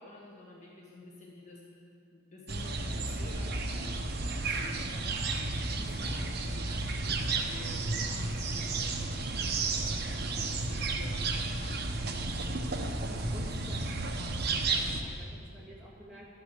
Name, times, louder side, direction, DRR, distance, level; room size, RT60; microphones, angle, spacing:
voice 1, 0.0-10.1 10.4-12.0, left 2 dB, 35° left, -3 dB, 1.5 m, -50 dB
sound 1, 2.5-15.0, right 3 dB, 50° right, 1.0 m, -32 dB
voice 2, 12.9-16.3, equal, 5° right, -7 dB, 2.5 m, -50 dB
12.5 x 10.0 x 6.7 m, 2.4 s
head